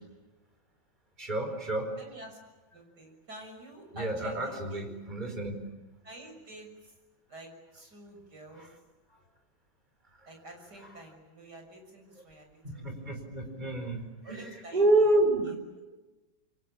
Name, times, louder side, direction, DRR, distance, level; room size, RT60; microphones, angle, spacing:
voice 1, 1.2-1.9 3.9-5.6 8.6-8.7 12.6-14.4 14.7-15.4, right 2 dB, 20° right, 4 dB, 5.1 m, -28 dB
voice 2, 2.0-2.4 2.7-4.8 6.0-6.9 7.3-8.7 10.3-13.2 14.2-15.1 15.4-15.5, right 1 dB, 55° right, 3 dB, 7.2 m, -48 dB
28.0 x 24.0 x 8.9 m, 1.1 s
omnidirectional pair, 2.1 m